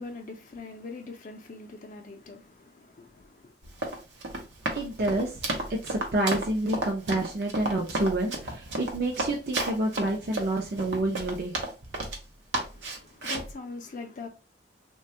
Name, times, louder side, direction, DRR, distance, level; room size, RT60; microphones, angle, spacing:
voice 1, 0.0-3.5 12.6-14.3, left 3 dB, 45° left, 0.4 m, -42 dB
Run, 3.6-12.2 12.5-13.5, right 2 dB, 90° right, 0.7 m, -32 dB
voice 2, 4.7-5.3 5.7-11.5, right 1 dB, 55° right, 0.5 m, -28 dB
3.2 x 2.2 x 2.8 m
head